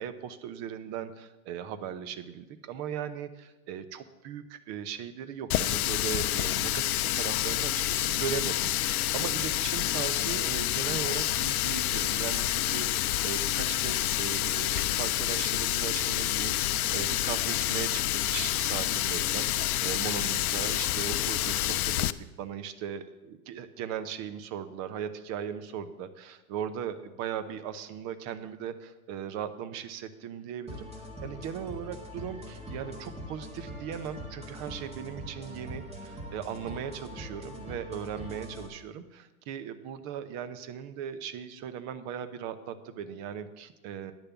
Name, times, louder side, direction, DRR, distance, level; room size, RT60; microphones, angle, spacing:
voice 1, 0.0-30.9 31.2-44.1, right 8 dB, 35° right, 12 dB, 0.9 m, -38 dB
Water tap faucet, 5.5-22.1, left 14 dB, 70° left, 0.6 m, -28 dB
sound 1, 30.7-38.7, equal, 15° right, 1.9 m, -42 dB
10.0 x 6.7 x 7.0 m, 1.1 s
hypercardioid pair, 105°, 45 cm